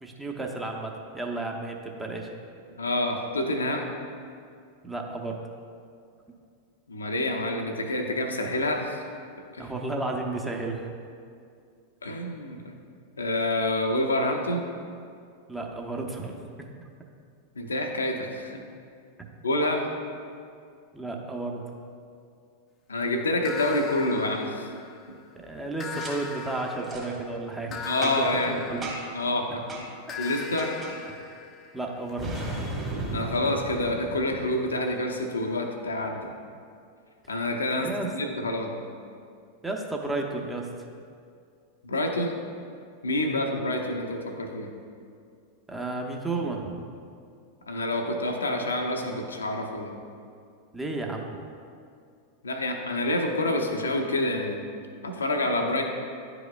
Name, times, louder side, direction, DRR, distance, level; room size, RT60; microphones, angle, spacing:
voice 1, 0.0-2.3 4.8-5.4 9.6-10.9 15.5-16.7 19.2-19.3 20.9-21.6 25.4-28.9 31.7-32.3 37.8-38.1 39.6-40.7 43.2-43.6 45.7-46.8 50.7-51.3, right 2 dB, 10° right, 1 dB, 0.7 m, -33 dB
voice 2, 2.8-3.9 6.9-9.0 9.5-9.7 12.0-12.7 13.2-14.7 17.6-18.6 19.4-20.0 22.9-24.7 27.8-28.6 29.1-29.9 30.2-30.8 33.1-36.3 37.3-38.7 39.0-39.1 41.8-42.4 43.0-44.7 47.6-49.9 52.4-54.7 55.0-55.8, left 1 dB, 75° left, 3 dB, 0.6 m, -28 dB
sound 1, 23.4-25.2 25.8-29.5 30.1-33.8, left 5 dB, 25° left, 0.6 m, -40 dB
Boom, 26.0-26.1 26.8-27.1 28.0-28.4 28.8-29.2 29.7-29.9 30.6-31.0 32.2-34.9, right 2 dB, 25° right, 1.5 m, -35 dB
10.5 x 4.8 x 2.3 m, 2.3 s
figure-of-eight pair, 90°, 0 cm